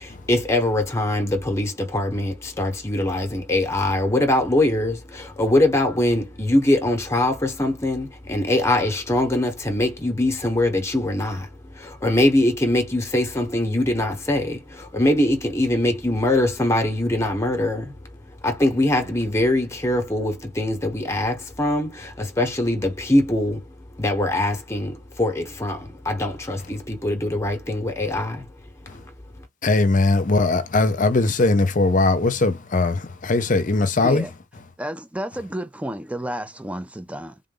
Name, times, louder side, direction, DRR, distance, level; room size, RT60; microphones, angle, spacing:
voice 1, 0.0-18.0 18.2-23.7 24.0-28.5 28.9-29.0 29.4-29.5, left 1 dB, 15° left, 0.9 m, -22 dB
voice 2, 29.6-34.3, left 3 dB, 40° left, 0.6 m, -20 dB
voice 3, 34.8-37.4, right 1 dB, 5° right, 0.4 m, -31 dB
3.6 x 2.5 x 3.8 m
head